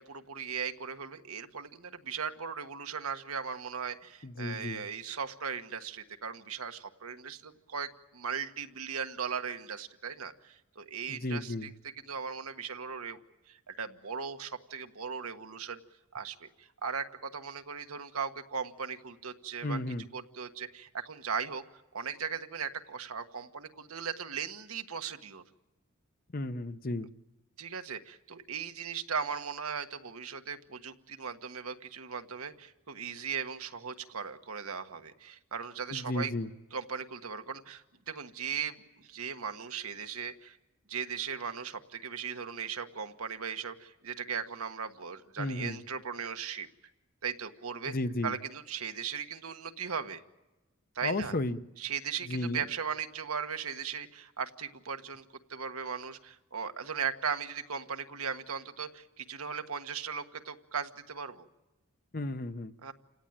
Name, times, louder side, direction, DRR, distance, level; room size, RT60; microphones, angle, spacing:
voice 1, 0.0-11.7 12.0-13.2 13.5-15.8 16.1-19.8 20.1-21.6 21.9-25.4 27.6-36.3 36.7-40.6 40.9-46.7 47.2-47.9 48.2-50.2 50.9-51.3 51.8-55.2 55.5-61.5 62.8-62.9, right 6 dB, 85° right, 7 dB, 1.4 m, -38 dB
voice 2, 4.2-4.8 11.1-11.7 19.6-20.0 26.3-27.1 35.9-36.5 45.4-45.8 47.9-48.3 51.0-51.6 52.2-52.6 62.1-62.7, left 2 dB, 40° left, 11 dB, 0.8 m, -34 dB
29.0 x 17.5 x 8.9 m, 1.1 s
head